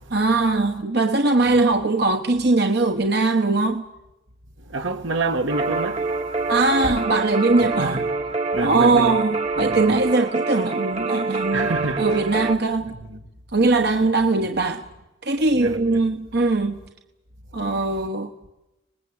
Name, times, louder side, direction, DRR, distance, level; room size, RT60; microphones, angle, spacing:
voice 1, 0.1-3.8 6.5-8.0 8.6-11.7 12.0-12.9 13.5-14.8 15.2-16.8 17.5-18.3, right 3 dB, 55° right, 1.1 m, -20 dB
voice 2, 4.6-6.5 7.8-8.0 8.5-9.1 9.6-10.0 11.5-12.4 13.0-13.2 15.5-16.0, right 3 dB, 75° right, 2.0 m, -28 dB
sound 1, 5.5-12.6, right 3 dB, 30° right, 1.4 m, -26 dB
25.5 x 20.5 x 8.0 m
head